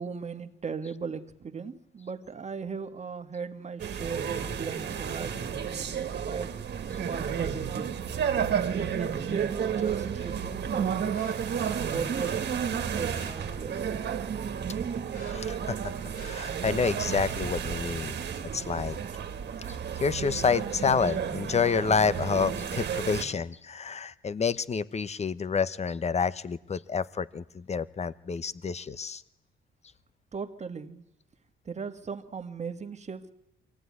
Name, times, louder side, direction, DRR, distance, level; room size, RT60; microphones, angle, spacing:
voice 1, 0.0-6.6 7.1-8.0 8.7-11.2 11.4-13.9 30.3-31.0 31.7-33.3, right 5 dB, 35° right, 9 dB, 1.8 m, -38 dB
sound 1, 3.8-23.2, right 8 dB, 60° right, 1.9 m, -32 dB
sound 2, 11.1-11.7 12.1-12.3 13.0-14.3 14.6-16.8 17.1-17.5 18.0-18.3 18.6-18.7, left 4 dB, 55° left, 4.8 m, -51 dB
voice 2, 15.3-15.8 16.2-18.2 18.5-19.0 20.0-29.2, left 5 dB, 35° left, 17 dB, 1.0 m, -28 dB
24.0 x 17.0 x 9.6 m, 0.89 s
cardioid pair, 90°, 20 cm